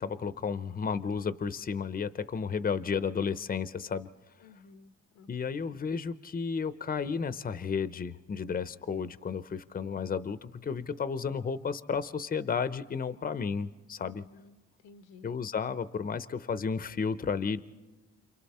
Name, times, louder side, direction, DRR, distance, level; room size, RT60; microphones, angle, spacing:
voice 1, 0.0-4.1 5.3-14.2 15.2-17.6, left 6 dB, 30° left, 13 dB, 0.7 m, -33 dB
voice 2, 4.4-5.3 14.0-15.3, left 4 dB, 90° left, 10 dB, 1.0 m, -55 dB
29.5 x 27.5 x 4.3 m, 1.2 s
cardioid pair, 90°, 30 cm